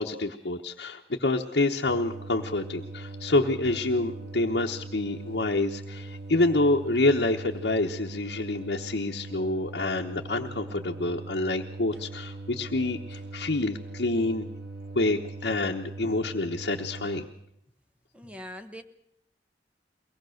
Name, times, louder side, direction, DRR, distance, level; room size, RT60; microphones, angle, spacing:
voice 1, 0.0-14.5 14.9-17.3, left 2 dB, 65° left, 0 dB, 1.0 m, -27 dB
sound 1, 1.9-17.2, right 3 dB, 70° right, 1.6 m, -40 dB
voice 2, 18.1-18.8, equal, 5° right, 8 dB, 1.1 m, -41 dB
23.0 x 18.5 x 6.5 m, 0.78 s
head